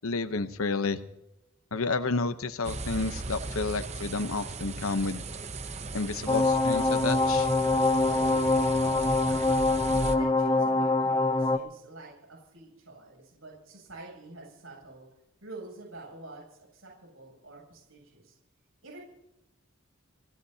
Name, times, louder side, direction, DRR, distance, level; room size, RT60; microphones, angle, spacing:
voice 1, 0.0-1.0 1.7-5.2 5.9-7.5, left 3 dB, 90° left, 10 dB, 0.9 m, -30 dB
sound 1, 2.6-10.2, right 3 dB, 30° right, 0.8 m, -37 dB
sound 2, 6.3-11.6, left 2 dB, 20° left, 0.7 m, -24 dB
voice 2, 8.1-8.5 8.8-15.1 15.4-18.3 18.8-19.0, right 2 dB, 80° right, -2 dB, 7.9 m, -47 dB
30.0 x 16.5 x 2.9 m, 0.92 s
head